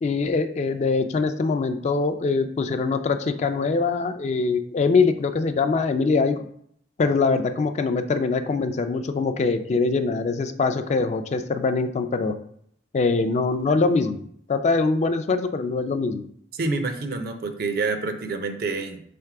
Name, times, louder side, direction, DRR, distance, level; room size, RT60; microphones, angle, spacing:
voice 1, 0.0-6.4 7.0-12.3 12.9-14.2 14.5-16.2, left 4 dB, 40° left, 8 dB, 0.3 m, -23 dB
voice 2, 16.5-19.0, right 3 dB, 60° right, 7 dB, 0.5 m, -27 dB
3.4 x 3.2 x 4.7 m, 0.66 s
head